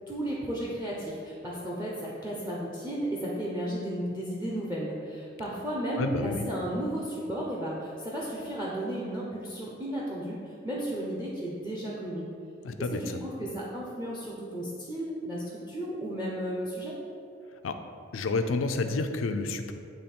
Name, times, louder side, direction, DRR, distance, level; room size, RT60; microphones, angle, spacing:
voice 1, 0.1-12.3 12.8-16.9, right 1 dB, 10° right, -5 dB, 0.7 m, -34 dB
voice 2, 6.0-6.5 12.6-13.2 17.6-17.8 18.1-19.7, left 3 dB, 85° left, 7 dB, 0.5 m, -29 dB
9.1 x 3.1 x 4.3 m, 2.4 s
head